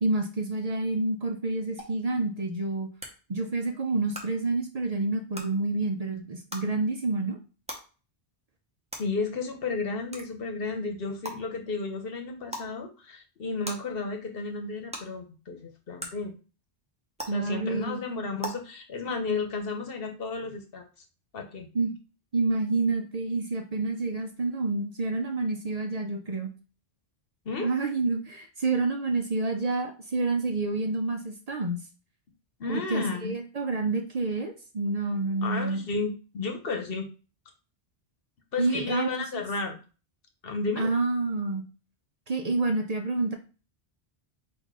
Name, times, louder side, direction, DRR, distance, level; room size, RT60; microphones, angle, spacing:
voice 1, 0.0-2.9 3.3-7.4 17.3-18.0 21.7-21.9 22.3-26.5 27.6-31.8 32.7-35.8 38.6-39.4 40.8-41.6 42.3-43.4, right 3 dB, 45° right, 4 dB, 0.7 m, -28 dB
sound 1, 1.8-1.9 3.0-3.1 4.1-4.2 5.3-5.4 6.5-6.6 7.7-7.8 8.9-9.0 10.1-10.2 11.2-11.3 12.5-12.7 13.6-13.7 14.9-15.0 16.0-16.1 17.2-17.3 18.4-18.5, equal, 5° right, 0.9 m, -36 dB
voice 2, 9.0-16.3 17.3-20.8 21.3-21.7 27.4-27.7 32.6-33.3 35.4-37.1 38.5-39.8 40.4-40.9, left 4 dB, 65° left, 4 dB, 1.1 m, -33 dB
4.1 x 2.6 x 4.7 m, 0.35 s
omnidirectional pair, 1.0 m